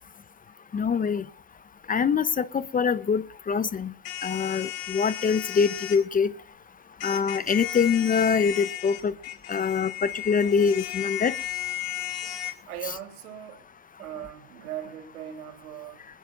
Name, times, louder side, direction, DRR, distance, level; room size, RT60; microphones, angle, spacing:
voice 1, 0.7-1.2 1.9-3.9 4.2-6.3 7.0-9.1 9.5-11.3, left 6 dB, 20° left, 0.8 m, -24 dB
sound 1, 4.0-6.0 7.0-12.5, left 14 dB, 60° left, 4.2 m, -34 dB
voice 2, 12.6-13.6 14.0-16.1, right 11 dB, 90° right, 3.7 m, -39 dB
20.5 x 20.0 x 2.6 m
supercardioid pair, 110°, 42 cm